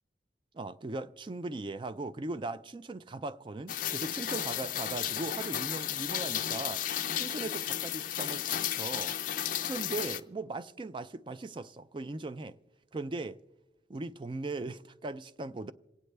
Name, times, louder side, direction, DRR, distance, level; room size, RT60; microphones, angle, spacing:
voice 1, 0.5-6.9 7.1-9.1 9.6-12.6 12.9-13.4 13.9-15.7, right 2 dB, 25° right, 0.4 m, -39 dB
Rain, 3.7-10.2, left 11 dB, 45° left, 0.4 m, -33 dB
27.5 x 9.2 x 3.3 m
head